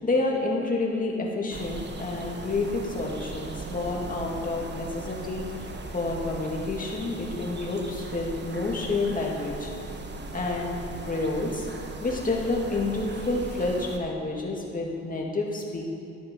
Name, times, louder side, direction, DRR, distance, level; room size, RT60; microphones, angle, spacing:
voice 1, 0.0-9.7 10.3-11.7 12.0-15.9, left 2 dB, 25° left, -1 dB, 2.2 m, -29 dB
sound 1, 1.5-14.0, right 3 dB, 35° right, 1.2 m, -38 dB
12.0 x 10.5 x 4.5 m, 2.6 s
cardioid pair, 90°, 30 cm